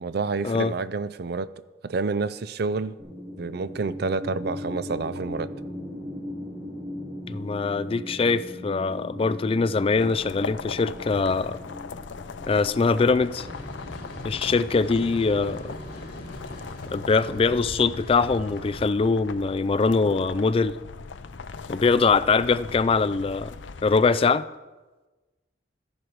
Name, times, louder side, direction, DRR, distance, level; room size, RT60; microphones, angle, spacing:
voice 1, 0.0-1.5 1.8-3.0 3.4-5.5, right 4 dB, 60° right, 16 dB, 0.5 m, -28 dB
sound 1, 3.0-15.1, left 1 dB, 40° right, 5.1 m, -39 dB
voice 2, 7.3-11.6 12.5-13.5 14.2-15.7 16.9-20.8 21.7-23.6 23.8-24.5, left 4 dB, 30° left, 14 dB, 0.4 m, -23 dB
sound 2, 9.9-24.1, left 4 dB, 85° left, 0.6 m, -40 dB
sound 3, 13.3-18.8, equal, 60° left, 4.2 m, -40 dB
13.5 x 11.0 x 4.7 m, 1.2 s
head